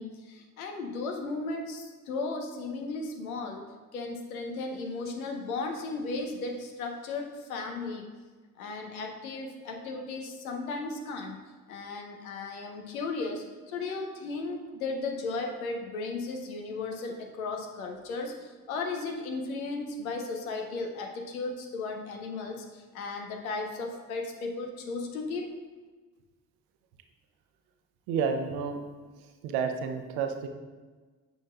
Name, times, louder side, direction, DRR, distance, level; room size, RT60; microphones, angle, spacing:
voice 1, 0.0-3.6 3.9-8.0 8.6-11.4 11.7-25.5, left 3 dB, 80° left, 3 dB, 0.8 m, -35 dB
voice 2, 28.1-28.8 29.4-30.5, right 6 dB, 60° right, 6 dB, 0.8 m, -30 dB
7.9 x 6.2 x 2.4 m, 1.4 s
figure-of-eight pair, 45°, 42 cm